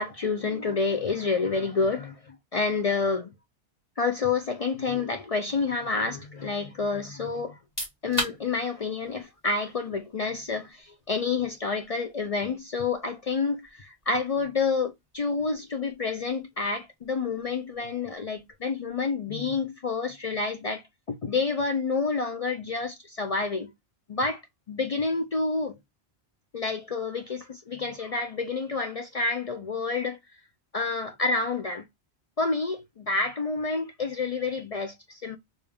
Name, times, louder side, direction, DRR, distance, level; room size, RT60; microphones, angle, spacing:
voice 1, 0.0-3.3 4.0-7.6 8.0-23.7 24.1-24.4 24.7-25.8 26.5-30.2 30.7-31.9 32.4-35.4, left 4 dB, 50° left, 0.4 m, -29 dB
sound 1, 7.5-20.2, equal, 15° left, 1.9 m, -43 dB
3.4 x 2.7 x 3.4 m
omnidirectional pair, 1.1 m